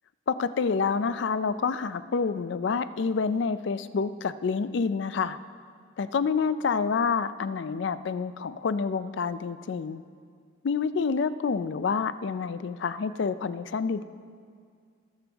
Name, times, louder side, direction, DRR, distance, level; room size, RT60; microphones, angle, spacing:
voice 1, 0.3-5.4 6.0-10.0 10.6-14.0, left 5 dB, 60° left, 13 dB, 0.4 m, -28 dB
18.5 x 7.0 x 3.4 m, 2.1 s
head